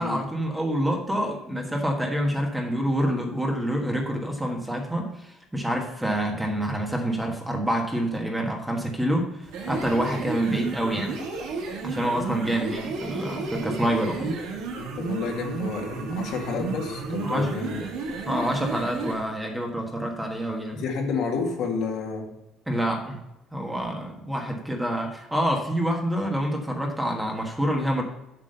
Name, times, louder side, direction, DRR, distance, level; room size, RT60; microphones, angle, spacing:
voice 1, 0.0-11.1 11.8-14.3 17.2-17.5 18.3-20.8 22.7-23.2 23.5-28.0, equal, 5° right, 1 dB, 1.4 m, -27 dB
sound 1, 9.4-19.2, right 4 dB, 90° right, 2.4 m, -33 dB
voice 2, 14.9-17.8 20.7-22.3, left 4 dB, 65° left, 1 dB, 2.1 m, -30 dB
7.7 x 6.2 x 6.7 m, 0.93 s
cardioid pair, 155°, 0 cm